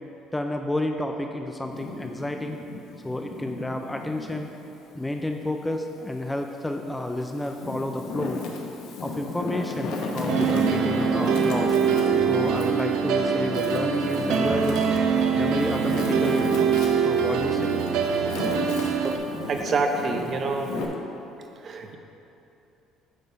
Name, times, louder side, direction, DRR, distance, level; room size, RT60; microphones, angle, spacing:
voice 1, 0.3-2.6 3.0-4.5 4.9-8.4 9.0-11.8 12.3-14.8 15.3-17.8, left 1 dB, 10° left, 4 dB, 0.4 m, -30 dB
Wind, 1.6-4.5 5.0-6.3 6.9-20.8, left 3 dB, 80° left, 1.0 m, -34 dB
sound 1, 10.3-19.2, right 6 dB, 75° right, 0.7 m, -23 dB
voice 2, 19.5-20.7 21.6-22.0, right 3 dB, 40° right, 4 dB, 0.8 m, -26 dB
9.1 x 3.5 x 6.8 m, 2.8 s
cardioid pair, 125°, 0 cm